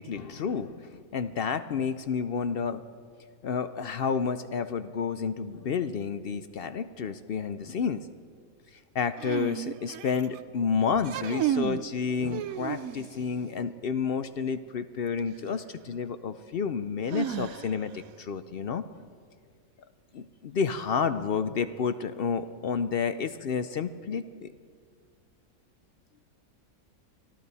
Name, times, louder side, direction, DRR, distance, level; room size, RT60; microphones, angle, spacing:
voice 1, 0.0-2.8 3.4-8.1 8.7-18.9 20.1-24.5, left 6 dB, 65° left, 11 dB, 0.6 m, -30 dB
sound 1, 9.2-10.4 11.0-11.9 12.3-13.2 15.2-15.3 17.1-18.0, right 10 dB, 75° right, 1.0 m, -32 dB
24.5 x 14.0 x 4.1 m, 2.1 s
omnidirectional pair, 1.6 m